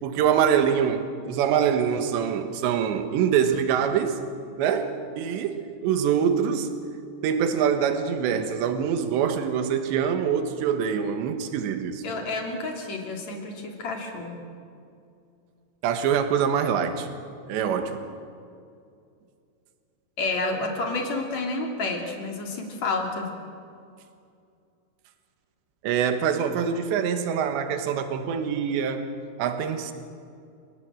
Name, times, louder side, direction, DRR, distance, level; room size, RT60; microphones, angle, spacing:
voice 1, 0.0-4.2 4.6-6.7 7.2-12.0 15.8-17.1 17.5-18.1 25.8-29.1 29.4-29.9, right 8 dB, 75° right, 3.6 m, -24 dB
voice 2, 12.0-14.3 20.2-23.3, left 3 dB, 40° left, 3.7 m, -30 dB
29.5 x 17.5 x 7.8 m
omnidirectional pair, 5.3 m